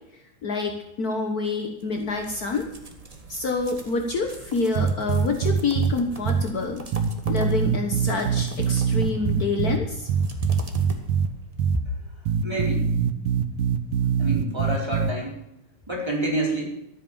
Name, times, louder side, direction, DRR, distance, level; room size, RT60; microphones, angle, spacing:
voice 1, 0.4-2.7 3.3-6.9 7.3-10.1, left 3 dB, 75° left, 4 dB, 0.8 m, -27 dB
sound 1, 1.8-11.5, right 2 dB, 50° right, 0.4 m, -42 dB
sound 2, 4.8-5.9 6.3-6.4 6.9-9.8 10.1-11.3 11.6-11.8 12.3-15.1, right 7 dB, 80° right, 2.2 m, -23 dB
voice 2, 12.4-12.9 14.2-15.4 15.9-16.7, right 1 dB, 10° right, -3 dB, 4.0 m, -28 dB
13.5 x 9.3 x 7.1 m, 0.85 s
omnidirectional pair, 3.6 m